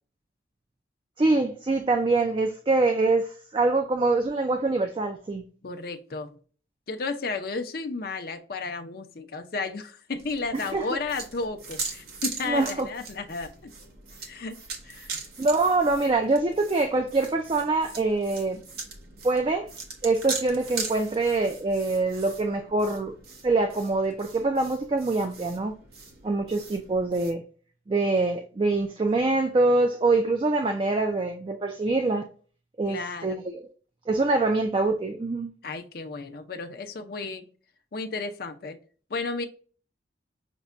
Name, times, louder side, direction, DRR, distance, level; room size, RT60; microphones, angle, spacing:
voice 1, 1.2-5.4 10.7-10.9 12.5-12.9 15.4-18.6 19.2-19.7 20.0-23.1 23.4-25.7 26.2-27.4 27.9-32.3 32.8-33.7 34.1-35.5, right 3 dB, 30° right, 0.3 m, -24 dB
voice 2, 5.6-6.3 6.9-13.7 14.3-14.6 14.8-15.2 32.9-33.4 35.6-37.5 37.9-38.8 39.1-39.5, left 3 dB, 55° left, 0.5 m, -33 dB
sound 1, 10.2-27.3, right 4 dB, 55° right, 0.9 m, -40 dB
5.9 x 2.2 x 2.5 m
head